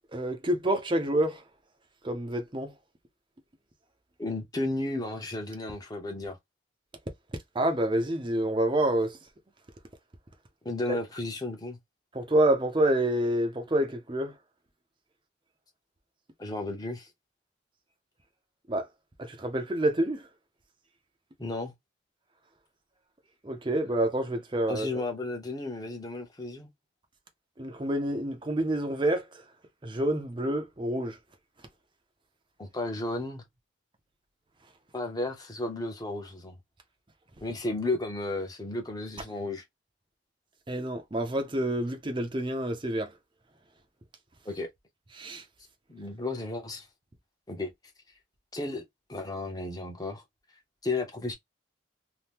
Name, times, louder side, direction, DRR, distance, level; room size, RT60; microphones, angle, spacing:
voice 1, 0.1-1.4 2.0-2.7 7.5-9.2 10.9-11.0 12.1-14.4 18.7-18.9 19.2-20.3 23.4-25.0 27.6-29.4 29.8-31.2 40.7-43.1 45.1-45.4, right 1 dB, 25° right, 0.5 m, -28 dB
voice 2, 4.2-6.4 10.6-11.8 16.4-17.1 21.4-21.7 24.7-26.7 32.6-33.4 34.9-36.6 37.4-39.6 44.4-44.7 45.9-46.9 47.5-47.7 48.5-48.8 49.1-50.2 50.8-51.3, left 2 dB, 20° left, 0.8 m, -33 dB
2.8 x 2.2 x 3.3 m
head